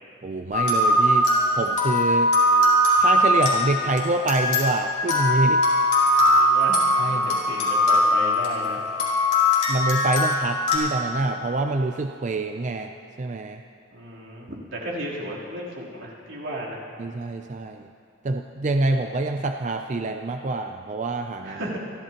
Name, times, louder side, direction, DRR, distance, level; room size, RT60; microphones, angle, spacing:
voice 1, 0.2-1.3 1.5-2.3 3.0-5.6 7.0-7.4 9.7-12.9 13.2-13.6 17.0-17.9 18.2-21.6, right 2 dB, 40° right, 5 dB, 0.5 m, -26 dB
sound 1, 0.5-10.8, left 1 dB, 40° left, 3.9 m, -21 dB
voice 2, 6.2-8.8 13.9-16.8 21.4-21.8, right 1 dB, 85° right, -6 dB, 3.5 m, -34 dB
28.0 x 12.5 x 3.0 m, 2.5 s
head